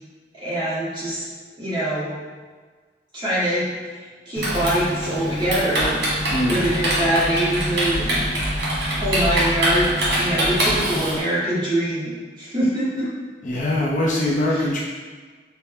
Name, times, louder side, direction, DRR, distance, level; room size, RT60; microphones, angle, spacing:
voice 1, 0.3-1.2 1.6-2.2 3.1-3.7 3.9-6.0 6.4-8.2 9.0-9.9 10.2-13.1 14.5-14.6, right 1 dB, 25° right, -10 dB, 1.4 m, -24 dB
Typing, 4.4-11.2, right 1 dB, 70° right, 1.3 m, -23 dB
voice 2, 6.3-6.7 13.4-14.8, left 1 dB, 45° left, -4 dB, 0.6 m, -22 dB
5.6 x 2.1 x 3.5 m, 1.5 s
head